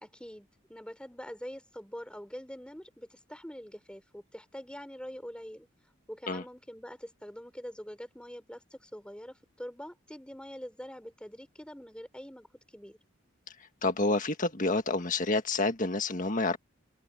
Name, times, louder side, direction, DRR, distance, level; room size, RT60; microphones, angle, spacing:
voice 1, 0.0-5.7 6.1-13.0, equal, 5° left, 4.3 m, -44 dB
voice 2, 13.8-16.6, left 2 dB, 40° left, 1.8 m, -28 dB
open air
head